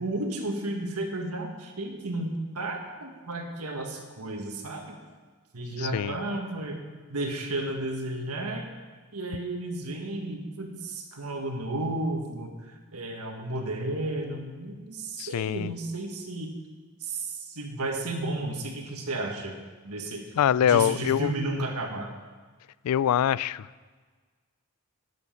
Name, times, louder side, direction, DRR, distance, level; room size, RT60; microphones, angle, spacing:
voice 1, 0.0-5.0 5.5-6.8 7.1-8.7 9.1-16.5 17.0-19.5 19.8-20.2 20.6-22.1, right 2 dB, 90° right, 3 dB, 1.7 m, -33 dB
voice 2, 5.8-6.2 15.2-15.7 20.4-21.3 22.8-23.7, left 9 dB, 85° left, 20 dB, 0.3 m, -24 dB
11.0 x 9.8 x 5.6 m, 1.4 s
head